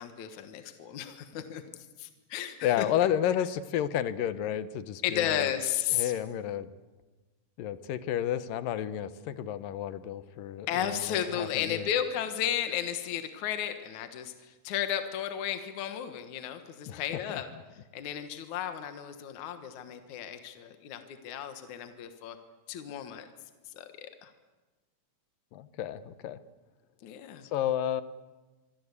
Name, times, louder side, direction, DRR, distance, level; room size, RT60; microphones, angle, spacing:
voice 1, 0.0-2.9 5.0-6.1 10.7-17.5 17.9-22.4 22.7-23.3 23.7-24.3 27.0-27.5, left 10 dB, 65° left, 8 dB, 2.7 m, -34 dB
voice 2, 2.6-5.5 5.9-6.7 7.6-11.9 16.9-17.0 17.3-17.4 25.5-26.4 27.4-28.0, left 10 dB, 90° left, 13 dB, 2.8 m, -31 dB
25.0 x 24.5 x 8.4 m, 1.2 s
omnidirectional pair, 3.8 m